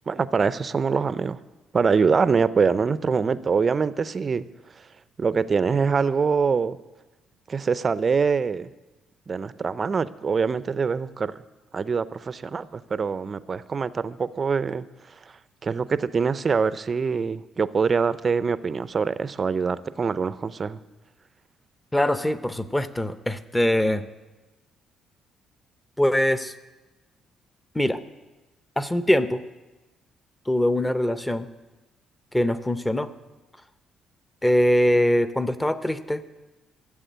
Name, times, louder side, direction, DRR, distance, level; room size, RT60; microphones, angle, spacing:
voice 1, 0.1-1.4 1.7-4.4 5.2-6.8 7.5-8.7 9.3-11.4 11.7-14.9 15.6-20.8, right 5 dB, 30° right, 15 dB, 0.5 m, -24 dB
voice 2, 21.9-24.1 26.0-26.5 27.7-28.0 28.8-29.4 30.5-31.5 32.3-33.1 34.4-36.2, left 1 dB, 10° left, 12 dB, 0.7 m, -22 dB
14.0 x 7.4 x 9.3 m, 1.1 s
cardioid pair, 125°, 0 cm